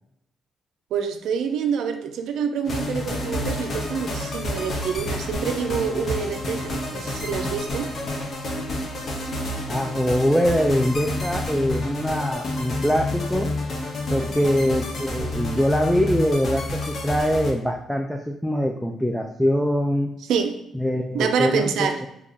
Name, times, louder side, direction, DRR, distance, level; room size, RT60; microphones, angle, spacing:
voice 1, 0.9-7.9 14.2-14.4 20.3-20.6 21.1-22.0, right 6 dB, 80° right, 7 dB, 0.4 m, -26 dB
sound 1, 2.6-17.5, left 1 dB, 50° left, 0.7 m, -29 dB
voice 2, 9.7-13.5 14.1-20.1 20.7-21.7, equal, ahead, 3 dB, 0.3 m, -23 dB
3.1 x 2.3 x 3.7 m, 0.80 s
cardioid pair, 90°, 0 cm